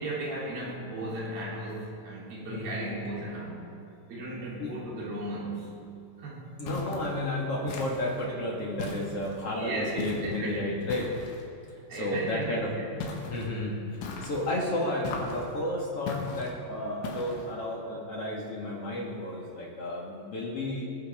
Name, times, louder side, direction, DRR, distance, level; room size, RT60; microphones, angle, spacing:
voice 1, 0.0-3.6 4.1-5.9 6.2-6.5 9.6-10.7 11.9-12.8, right 1 dB, 55° right, -5 dB, 5.2 m, -36 dB
voice 2, 2.5-3.0 4.6-4.7 6.6-11.1 11.7-12.8 13.2-20.9, left 1 dB, 50° left, -3 dB, 2.0 m, -32 dB
sound 1, 6.7-7.1 7.7-8.2 8.8-9.4 10.0-10.4 10.9-11.5 13.0-13.5 14.0-14.5 15.0-15.5 16.1-16.5 17.0-17.5, left 4 dB, 85° left, 3.8 m, -38 dB
20.5 x 15.5 x 3.7 m, 2.6 s
omnidirectional pair, 5.0 m